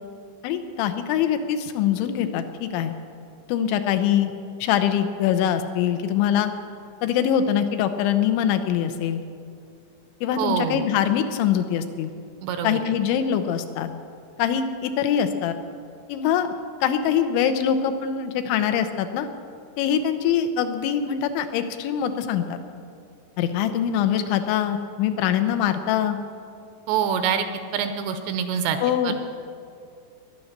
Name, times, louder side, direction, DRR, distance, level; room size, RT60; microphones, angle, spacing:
voice 1, 0.4-2.9 3.5-4.3 4.6-6.5 7.0-9.2 10.2-12.1 12.6-13.9 14.4-15.5 16.1-16.5 16.8-19.3 19.8-22.6 23.4-26.2 28.8-29.1, left 9 dB, 80° left, 8 dB, 3.2 m, -23 dB
voice 2, 10.4-10.9 12.4-12.8 26.9-27.5 27.7-28.8 29.0-29.1, right 8 dB, 80° right, 8 dB, 2.8 m, -25 dB
21.0 x 10.0 x 6.6 m, 2.4 s
omnidirectional pair, 5.4 m